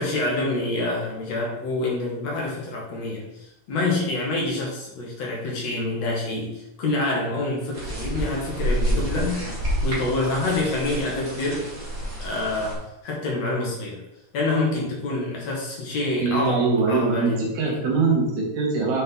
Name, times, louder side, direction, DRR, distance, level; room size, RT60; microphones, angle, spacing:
voice 1, 0.0-9.5 9.8-11.7 12.2-14.0 14.3-17.8, left 2 dB, 55° left, -3 dB, 2.9 m, -27 dB
sound 1, 7.7-12.7, right 1 dB, 20° right, 2.7 m, -28 dB
voice 2, 16.2-19.0, right 4 dB, 70° right, -1 dB, 3.1 m, -22 dB
7.5 x 5.3 x 3.9 m, 0.89 s
omnidirectional pair, 3.7 m